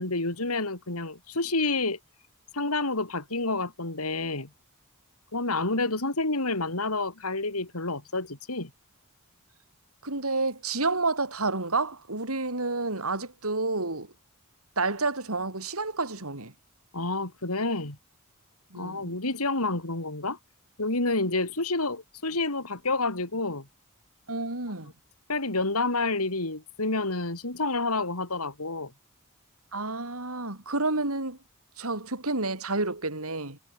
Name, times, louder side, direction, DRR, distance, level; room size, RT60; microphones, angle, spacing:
voice 1, 0.0-2.0 2.5-4.5 5.3-8.7 16.9-18.0 18.7-20.4 20.8-23.7 25.3-28.9, left 3 dB, 85° left, 4.4 m, -29 dB
voice 2, 10.0-14.1 14.8-16.5 18.7-19.1 24.3-24.9 29.7-31.4 31.8-33.6, right 3 dB, 75° right, 4.7 m, -29 dB
head